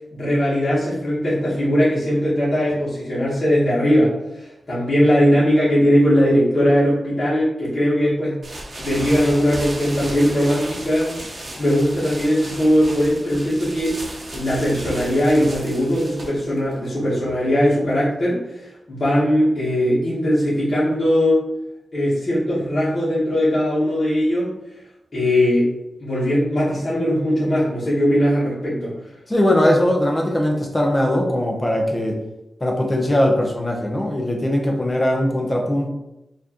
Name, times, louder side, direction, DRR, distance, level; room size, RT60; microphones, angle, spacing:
voice 1, 0.1-8.4 8.8-11.1 11.6-14.0 14.3-21.4 21.9-24.5 25.1-25.7 26.0-28.9, equal, 35° left, -10 dB, 1.1 m, -19 dB
sound 1, 8.4-18.0, right 1 dB, 45° right, 0.8 m, -35 dB
voice 2, 29.3-32.2 32.6-35.9, left 1 dB, 15° left, 1 dB, 0.6 m, -20 dB
4.4 x 2.5 x 2.9 m, 0.92 s
wide cardioid pair, 170°, 0 cm